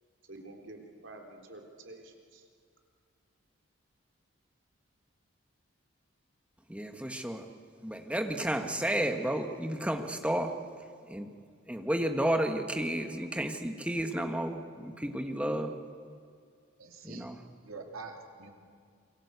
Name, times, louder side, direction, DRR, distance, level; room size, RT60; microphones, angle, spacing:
voice 1, 0.3-2.5, right 2 dB, 60° right, 2 dB, 3.6 m, -49 dB
voice 2, 6.7-7.4 7.8-10.5 11.1-11.3 11.7-15.7 17.0-17.4, right 1 dB, 5° right, 5 dB, 1.5 m, -32 dB
voice 3, 16.8-17.3 17.6-18.5, right 4 dB, 85° right, 2 dB, 3.4 m, -45 dB
28.0 x 23.5 x 8.3 m, 2.2 s
head